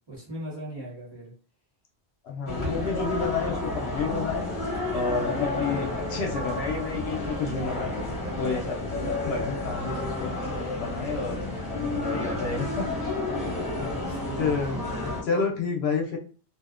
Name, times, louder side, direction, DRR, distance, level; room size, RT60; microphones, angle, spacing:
voice 1, 0.1-1.3 5.8-5.9 13.8-14.8, right 1 dB, 25° right, -5 dB, 0.9 m, -39 dB
voice 2, 2.2-4.5 4.9-10.3 10.8-11.4 11.7-12.9 13.8-16.2, left 5 dB, 70° left, 1 dB, 0.8 m, -30 dB
sound 1, 2.5-15.2, left 2 dB, 35° left, 0.8 m, -31 dB
2.6 x 2.0 x 2.4 m, 0.39 s
omnidirectional pair, 1.1 m